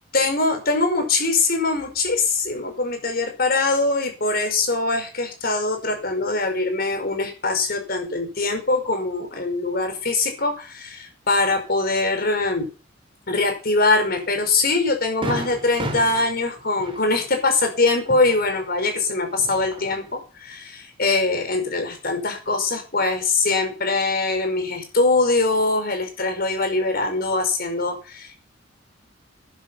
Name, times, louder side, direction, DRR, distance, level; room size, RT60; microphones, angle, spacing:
voice 1, 0.1-12.7 13.3-28.4, left 3 dB, 50° left, 6 dB, 5.3 m, -22 dB
Fireworks, 14.2-14.3 14.7-14.8 15.2-19.0 19.3-20.2, right 1 dB, 25° right, 3.8 m, -34 dB
12.5 x 11.0 x 5.8 m, 0.34 s
head